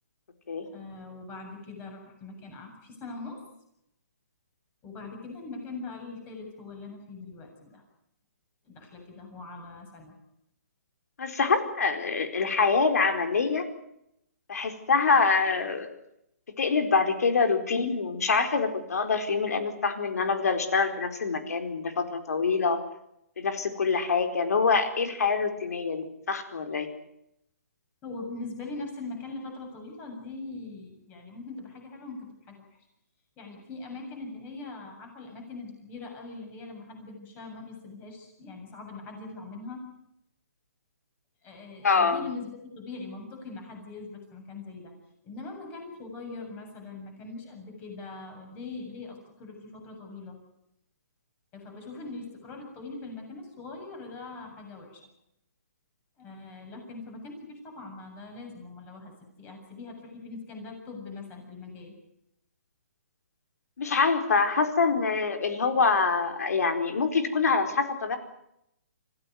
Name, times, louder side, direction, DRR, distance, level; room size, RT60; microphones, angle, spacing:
voice 1, 0.6-3.4 4.8-7.8 8.6-10.2 28.0-32.7 33.4-39.9 41.4-44.9 45.2-50.4 51.5-55.0 56.2-59.1 59.4-61.9, left 3 dB, 20° left, 3 dB, 7.5 m, -41 dB
voice 2, 11.2-13.7 14.5-15.9 16.6-22.8 23.4-26.9 41.8-42.3 63.8-68.2, left 4 dB, 75° left, 7 dB, 4.4 m, -25 dB
26.5 x 16.0 x 9.5 m, 0.80 s
hypercardioid pair, 160°, 9 cm